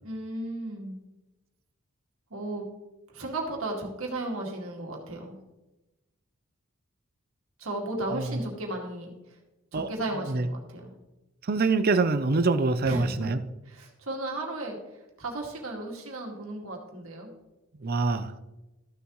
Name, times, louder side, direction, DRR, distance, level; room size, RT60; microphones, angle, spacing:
voice 1, 0.0-1.0 2.3-2.6 3.1-5.4 7.6-9.1 9.7-10.9 12.8-13.4 13.7-14.8 15.2-17.3, right 2 dB, 70° right, 0 dB, 2.2 m, -35 dB
voice 2, 11.5-13.4 17.8-18.3, right 3 dB, 45° right, 11 dB, 0.6 m, -24 dB
14.0 x 6.8 x 3.1 m, 1.0 s
head